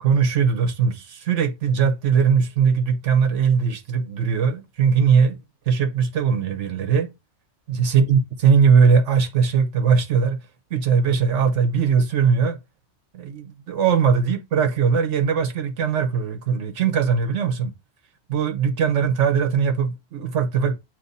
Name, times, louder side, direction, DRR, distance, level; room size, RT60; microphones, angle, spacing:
voice 1, 0.0-5.4 5.7-7.1 7.7-10.4 10.7-12.6 13.1-17.7 18.3-20.8, right 6 dB, 85° right, 1.3 m, -20 dB
7.7 x 3.1 x 4.0 m
omnidirectional pair, 1.2 m